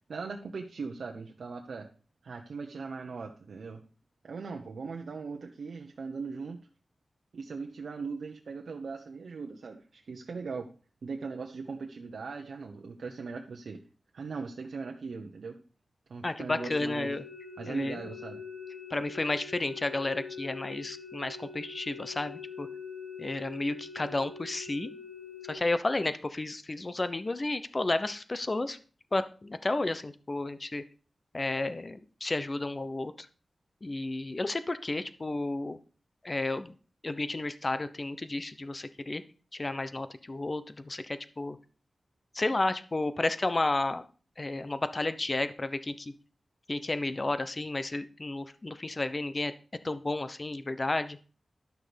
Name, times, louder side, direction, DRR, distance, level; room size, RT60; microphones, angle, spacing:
voice 1, 0.1-1.9 2.2-3.8 4.2-6.6 7.3-10.7 11.0-13.8 14.1-15.6 16.1-17.1 17.6-18.4, right 4 dB, 85° right, 2 dB, 1.0 m, -39 dB
voice 2, 16.2-17.2 17.6-18.0 18.9-22.7 23.2-24.9 25.4-28.8 29.1-30.8 31.3-33.3 33.8-35.8 36.2-36.8 37.0-39.2 39.5-41.6 42.3-44.0 44.4-46.1 46.7-49.5 49.8-51.2, left 2 dB, 35° left, 12 dB, 0.9 m, -32 dB
sound 1, 16.6-25.6, left 6 dB, 80° left, 6.7 m, -44 dB
11.5 x 6.2 x 5.2 m, 0.38 s
wide cardioid pair, 90°, 0 cm